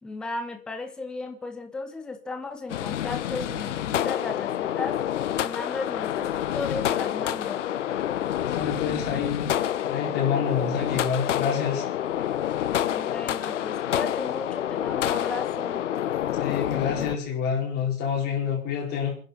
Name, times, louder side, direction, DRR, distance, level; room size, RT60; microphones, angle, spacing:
voice 1, 0.0-5.0 5.4-7.6 12.9-15.8, left 3 dB, ahead, 5 dB, 0.7 m, -35 dB
sound 1, 2.7-17.2, left 11 dB, 50° left, 1.1 m, -28 dB
voice 2, 8.5-9.5 9.8-11.8 16.4-19.2, left 7 dB, 20° left, 0 dB, 4.5 m, -27 dB
29.0 x 10.5 x 4.1 m, 0.41 s
hypercardioid pair, 150°, 46 cm